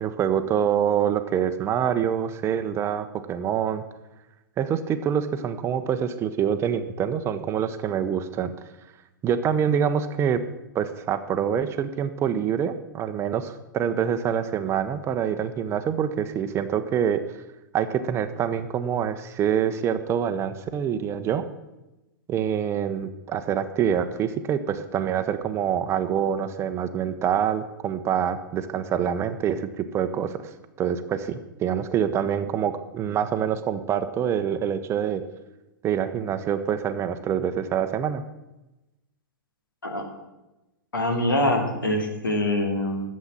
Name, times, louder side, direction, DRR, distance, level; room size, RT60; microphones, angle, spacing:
voice 1, 0.0-3.8 4.6-8.5 9.2-10.4 10.7-17.2 17.7-21.4 22.3-30.5 30.8-35.2 35.8-38.2, right 8 dB, 25° right, 10 dB, 0.8 m, -26 dB
voice 2, 40.9-43.0, left 1 dB, 80° left, 4 dB, 2.3 m, -24 dB
11.5 x 7.5 x 7.4 m, 1.0 s
figure-of-eight pair, 105°, 11 cm